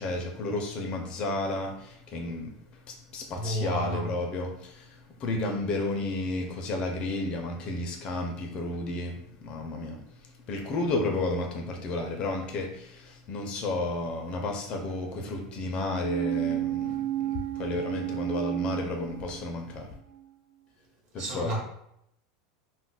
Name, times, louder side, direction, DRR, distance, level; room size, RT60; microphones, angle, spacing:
voice 1, 0.0-2.5 2.9-10.0 10.5-19.9 21.1-21.6, left 2 dB, 35° left, 0.4 m, -32 dB
voice 2, 3.3-4.1 21.2-21.6, right 1 dB, 40° right, 0.9 m, -31 dB
sound 1, 16.0-19.8 20.1-20.2, right 13 dB, 75° right, 0.3 m, -32 dB
2.2 x 2.0 x 3.8 m
supercardioid pair, 150°, 3 cm